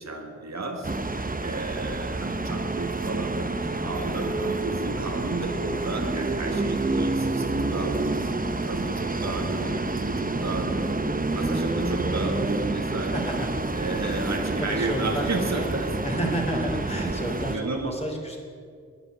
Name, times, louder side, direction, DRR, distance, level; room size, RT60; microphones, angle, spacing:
voice 1, 0.0-8.3 8.6-10.9 11.3-13.2 13.7-15.9 16.9-17.1 17.5-17.9, right 3 dB, 65° right, 2 dB, 1.9 m, -33 dB
sound 1, 0.8-17.6, right 2 dB, 30° right, 0.8 m, -28 dB
voice 2, 9.2-10.0 13.0-13.6 13.9-14.2 14.6-15.6 16.0-18.4, equal, 20° left, 0 dB, 2.9 m, -32 dB
11.0 x 10.0 x 9.5 m, 2.1 s
wide cardioid pair, 85°, 29 cm